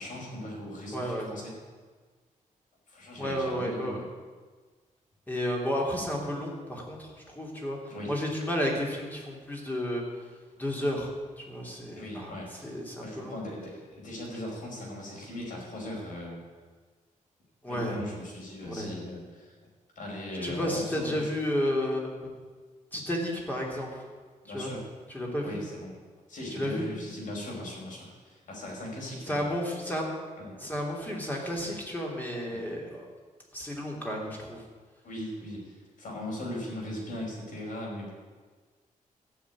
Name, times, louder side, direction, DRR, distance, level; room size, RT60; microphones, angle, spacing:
voice 1, 0.0-1.5 2.9-4.0 7.9-8.1 11.9-12.7 13.0-16.4 17.7-19.5 20.0-21.3 24.4-24.8 25.4-25.9 26.3-29.5 30.4-30.5 32.5-32.6 35.0-38.1, left 1 dB, 70° left, -3 dB, 5.5 m, -39 dB
voice 2, 0.9-1.3 3.2-4.1 5.3-7.8 8.1-10.0 10.6-12.3 12.6-13.4 17.6-18.0 18.6-18.9 20.4-22.3 22.9-24.0 24.5-24.7 25.1-25.6 26.5-26.9 29.3-30.1 30.6-33.1 33.5-34.6, equal, 10° left, -1 dB, 3.1 m, -32 dB
14.0 x 6.9 x 9.6 m, 1.4 s
wide cardioid pair, 145°, 14 cm